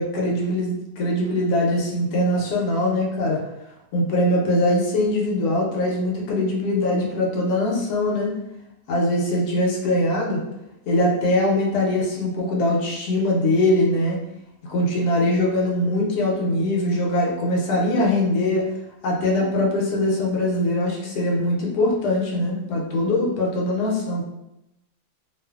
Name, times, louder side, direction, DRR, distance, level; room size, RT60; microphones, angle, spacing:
voice 1, 0.0-3.4 3.9-8.3 8.9-10.4 10.9-14.2 14.7-18.7 19.0-24.2, left 1 dB, 80° left, -2 dB, 1.1 m, -22 dB
2.5 x 2.4 x 2.3 m, 0.90 s
omnidirectional pair, 1.7 m